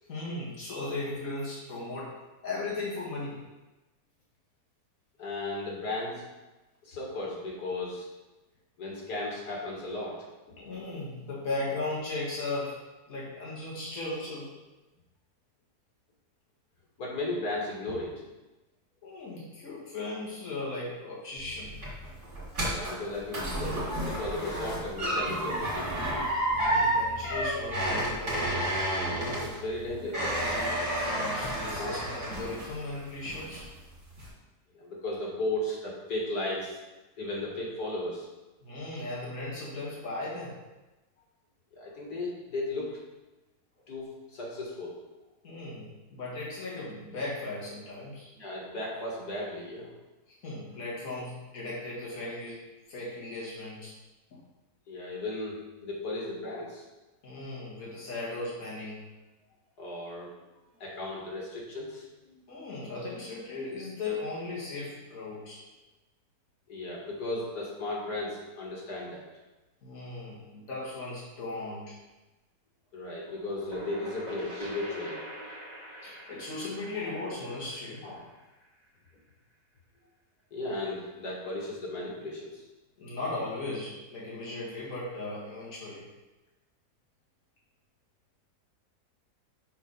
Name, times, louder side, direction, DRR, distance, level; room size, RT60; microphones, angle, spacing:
voice 1, 0.1-2.1 2.4-3.4 10.6-12.8 13.1-14.5 19.0-21.8 26.5-28.4 31.0-33.6 38.6-40.6 45.4-48.3 50.3-52.6 52.9-53.9 57.2-59.0 60.6-60.7 62.5-65.6 69.8-71.9 76.0-78.0 83.0-86.1, left 2 dB, 60° left, -7 dB, 2.1 m, -37 dB
voice 2, 5.2-6.2 6.8-8.1 8.8-10.3 17.0-18.1 22.6-26.0 29.3-30.3 31.7-31.9 34.7-36.8 37.2-38.3 41.7-42.9 43.9-45.0 48.4-49.9 54.9-56.8 59.8-60.3 60.8-62.3 66.7-69.3 72.9-75.2 76.9-77.1 78.0-78.2 80.5-82.6, left 2 dB, 90° left, -3 dB, 2.3 m, -35 dB
sound 1, 21.4-32.9 33.3-33.8 34.2-34.3, right 1 dB, 50° right, 2.6 m, -30 dB
sound 2, 73.3-78.8, right 1 dB, 25° right, 1.8 m, -44 dB
6.3 x 4.0 x 5.4 m, 1.1 s
omnidirectional pair, 1.6 m